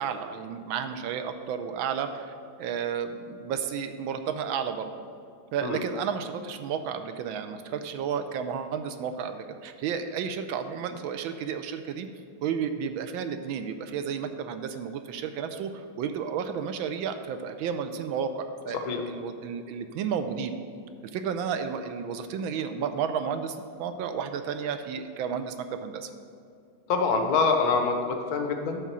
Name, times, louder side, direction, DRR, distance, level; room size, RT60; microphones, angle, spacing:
voice 1, 0.0-4.9 5.5-12.1 12.4-20.6 21.1-25.5 25.8-26.1, right 7 dB, 75° right, 8 dB, 1.3 m, -32 dB
voice 2, 26.9-28.8, left 4 dB, 60° left, 4 dB, 1.1 m, -25 dB
11.0 x 3.6 x 7.3 m, 2.4 s
omnidirectional pair, 2.4 m